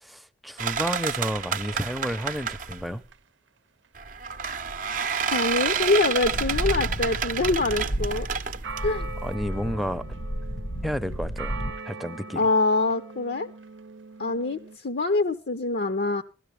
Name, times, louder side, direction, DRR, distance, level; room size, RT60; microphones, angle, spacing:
voice 1, 0.0-3.0 9.2-10.0 10.8-11.6 11.8-12.4, equal, ahead, 0.6 m, -31 dB
sound 1, 0.6-2.9 4.0-9.4, right 6 dB, 45° right, 0.6 m, -29 dB
sound 2, 3.1-3.2 4.6-4.7 6.3-6.4 6.6-6.7 8.2-8.3 8.6-14.8, right 4 dB, 85° right, 0.7 m, -41 dB
voice 2, 5.3-8.3 8.8-9.1 12.4-13.5 14.2-16.2, left 3 dB, 60° left, 0.7 m, -25 dB
sound 3, 6.2-11.7, equal, 80° left, 1.6 m, -32 dB
16.5 x 13.0 x 3.3 m
head